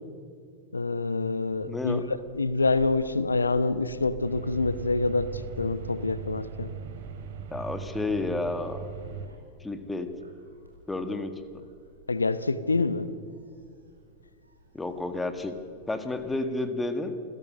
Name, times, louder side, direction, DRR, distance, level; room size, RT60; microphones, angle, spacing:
voice 1, 0.7-2.0 2.3-6.7 12.1-13.1, left 3 dB, 80° left, 16 dB, 0.9 m, -26 dB
Gull seagull, 1.6-16.5, right 1 dB, 80° right, 4.3 m, -50 dB
voice 2, 1.7-2.1 7.5-8.8 9.6-10.1 10.9-11.3 14.7-15.6 15.9-17.1, left 2 dB, 10° left, 9 dB, 1.8 m, -31 dB
sound 1, 4.2-9.3, right 7 dB, 55° right, 2.8 m, -40 dB
27.0 x 16.5 x 6.7 m, 2.3 s
figure-of-eight pair, 90°, 0 cm